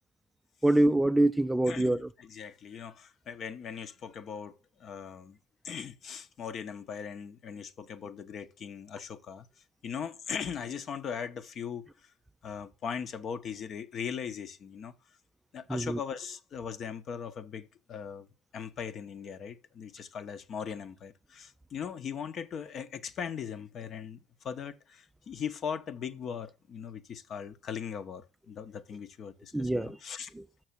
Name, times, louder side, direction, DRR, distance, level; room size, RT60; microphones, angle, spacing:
voice 1, 0.6-2.1 15.7-16.0 29.5-30.0 30.4-30.5, right 1 dB, 10° right, 0.4 m, -25 dB
voice 2, 1.7-5.4 5.6-9.5 9.8-11.9 12.4-14.9 15.5-18.3 18.5-24.2 24.4-30.3, left 7 dB, 45° left, 0.9 m, -39 dB
6.4 x 6.0 x 6.4 m
hypercardioid pair, 65°, 0 cm